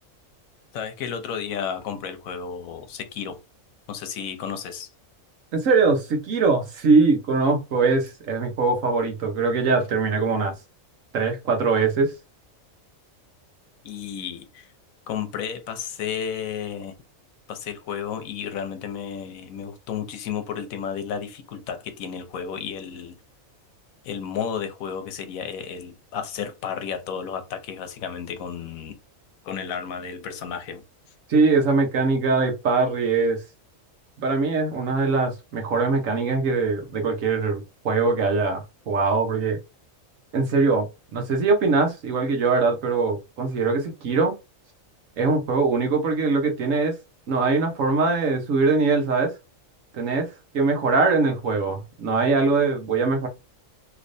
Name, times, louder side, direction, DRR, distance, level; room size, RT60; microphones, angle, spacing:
voice 1, 0.7-3.4 3.9-4.9 13.8-14.7 15.1-17.0 17.5-23.2 24.0-29.0 29.4-30.8, left 7 dB, 90° left, 1.1 m, -32 dB
voice 2, 5.5-10.5 11.1-12.1 31.3-33.4 34.2-39.6 40.3-40.9 41.1-44.3 45.2-47.0 47.3-49.3 49.9-53.3, right 4 dB, 75° right, 1.3 m, -22 dB
3.2 x 3.0 x 2.6 m
omnidirectional pair, 1.4 m